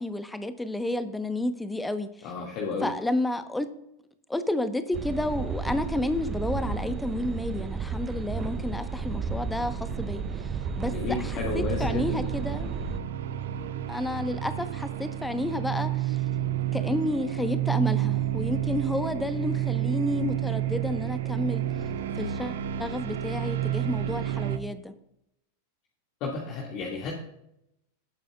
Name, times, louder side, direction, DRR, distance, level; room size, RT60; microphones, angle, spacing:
voice 1, 0.0-2.1 2.8-3.7 4.3-10.5 10.8-12.8 13.8-16.2 16.7-21.6 22.2-24.9, left 1 dB, 5° left, 10 dB, 1.1 m, -31 dB
voice 2, 2.2-2.9 10.9-12.3 12.6-12.8 26.2-27.1, left 4 dB, 40° left, -2 dB, 2.2 m, -32 dB
sound 1, 4.9-13.0, right 5 dB, 25° right, 0.8 m, -33 dB
sound 2, 8.2-24.6, right 12 dB, 60° right, 0.8 m, -31 dB
18.0 x 8.9 x 2.4 m, 0.81 s
figure-of-eight pair, 90°, 0 cm